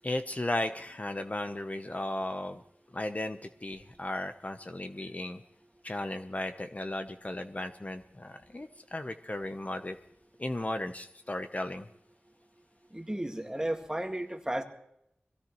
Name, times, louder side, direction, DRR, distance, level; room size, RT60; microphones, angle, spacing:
voice 1, 0.0-2.6 2.9-5.4 5.8-10.0 10.4-11.9, left 1 dB, 40° left, 7 dB, 0.8 m, -35 dB
voice 2, 12.9-14.6, right 1 dB, 15° right, 5 dB, 1.9 m, -33 dB
22.5 x 16.0 x 3.1 m, 0.77 s
wide cardioid pair, 50°, 4 cm